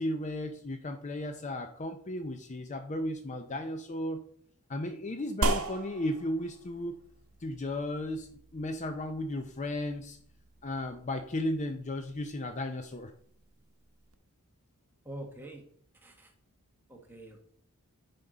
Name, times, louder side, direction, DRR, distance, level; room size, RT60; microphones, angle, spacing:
voice 1, 0.0-4.2 4.7-7.0 7.4-10.2 10.6-13.1, left 1 dB, 35° left, 7 dB, 0.6 m, -35 dB
sound 1, 5.4-14.1, right 2 dB, 70° right, 0.9 m, -39 dB
voice 2, 15.0-15.6 16.0-16.3 16.9-17.4, right 1 dB, 10° right, 1 dB, 1.4 m, -45 dB
9.6 x 5.3 x 4.0 m, 0.63 s
head